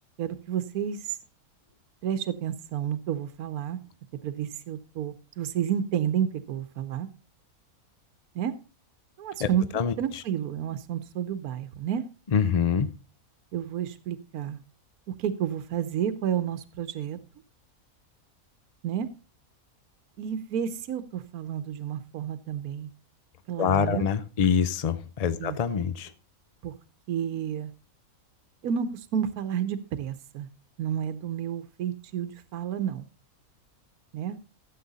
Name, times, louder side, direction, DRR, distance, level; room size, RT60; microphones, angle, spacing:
voice 1, 0.2-1.2 2.0-3.8 4.2-7.1 8.3-8.5 9.2-9.7 10.0-12.1 13.5-14.6 15.1-17.2 18.8-19.1 20.2-22.9 23.5-24.1 25.4-25.6 26.6-26.7 27.1-27.7 28.6-30.5 30.8-33.1 34.1-34.4, right 9 dB, 80° right, 11 dB, 1.3 m, -30 dB
voice 2, 12.3-12.9 23.6-26.1, left 7 dB, 65° left, 13 dB, 0.3 m, -25 dB
13.5 x 7.7 x 4.0 m, 0.32 s
omnidirectional pair, 1.6 m